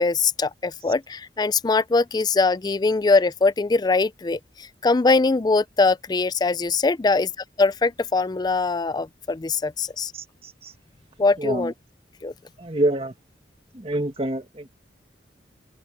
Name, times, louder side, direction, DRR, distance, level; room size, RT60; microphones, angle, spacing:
voice 1, 0.0-7.3 7.6-10.1 11.2-11.7 12.2-12.3, left 3 dB, 25° left, 0.4 m, -22 dB
voice 2, 10.1-10.7 11.4-11.7 12.6-13.1 13.7-14.7, right 1 dB, 35° right, 1.6 m, -27 dB
open air
head